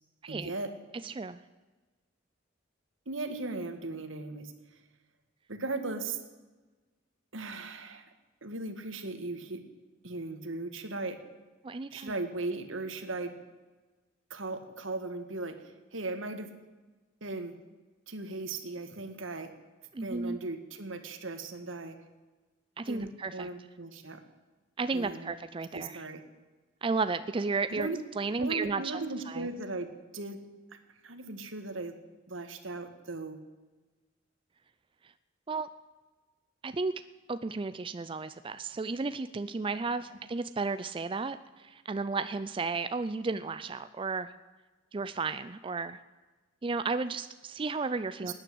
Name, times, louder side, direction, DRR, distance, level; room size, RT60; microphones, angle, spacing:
voice 1, 0.3-0.7 3.1-4.8 5.5-6.2 7.3-8.1 8.4-9.6 10.0-11.2 11.9-13.3 14.3-16.5 17.2-17.5 18.1-19.5 20.0-22.0 22.9-24.2 24.9-25.3 25.7-26.2 27.7-28.0 28.4-30.4 30.7-32.0 32.3-33.4 40.1-40.2 48.2-48.3, right 3 dB, 80° right, 8 dB, 1.8 m, -37 dB
voice 2, 1.0-1.4 11.6-12.1 19.9-20.4 22.8-23.5 24.8-26.0 26.8-27.9 28.2-29.0 29.3-29.5 35.5-35.7 36.6-36.9 37.3-44.3 44.9-46.0 46.6-48.3, right 4 dB, 25° right, 12 dB, 0.4 m, -33 dB
18.0 x 9.9 x 7.8 m, 1.2 s
head